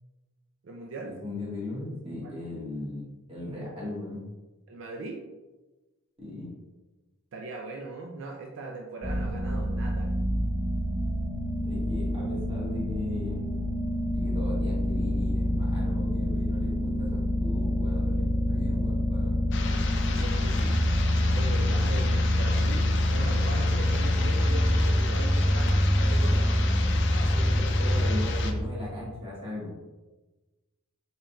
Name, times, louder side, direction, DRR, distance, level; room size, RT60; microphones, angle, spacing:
voice 1, 0.6-1.2 2.2-2.3 4.7-5.2 7.3-10.1 20.0-20.8 21.3-26.5, right 2 dB, 65° right, 1 dB, 0.4 m, -39 dB
voice 2, 1.2-4.2 6.2-6.5 11.6-13.5 14.1-19.3 27.1-29.7, left 1 dB, 25° right, -6 dB, 1.4 m, -37 dB
sound 1, 9.0-28.6, left 1 dB, ahead, 0.8 m, -26 dB
sound 2, 19.5-28.5, left 5 dB, 55° left, 0.4 m, -36 dB
4.1 x 3.6 x 2.3 m, 1.2 s
head